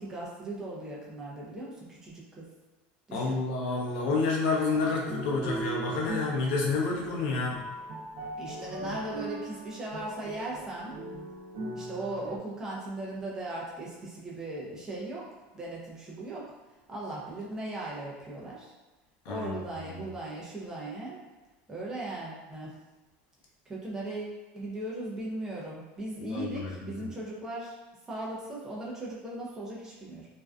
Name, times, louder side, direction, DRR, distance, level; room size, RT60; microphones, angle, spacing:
voice 1, 0.0-2.5 3.1-3.4 4.7-4.8 8.3-10.9 11.7-15.3 15.5-16.5 16.9-18.7 19.3-21.2 21.7-22.7 23.7-27.8 28.1-30.3, right 2 dB, 10° right, -5 dB, 0.5 m, -38 dB
voice 2, 3.1-7.6 19.3-19.6 26.2-27.1, left 3 dB, 70° left, -2 dB, 0.6 m, -29 dB
sound 1, 5.0-12.4, right 2 dB, 55° right, 0.6 m, -39 dB
2.5 x 2.2 x 2.3 m, 1.2 s
cardioid pair, 175°, 5 cm